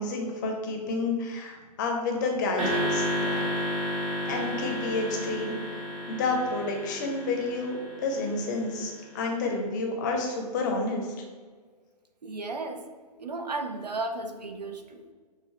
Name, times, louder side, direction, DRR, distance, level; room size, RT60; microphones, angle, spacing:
voice 1, 0.0-3.5 4.3-11.1, left 3 dB, 30° left, 2 dB, 0.6 m, -30 dB
sound 1, 2.6-9.0, equal, 50° right, 1.4 m, -32 dB
voice 2, 12.2-12.8 13.2-15.0, right 3 dB, 75° right, 6 dB, 0.6 m, -34 dB
6.2 x 2.5 x 2.3 m, 1.5 s
figure-of-eight pair, 125°, 21 cm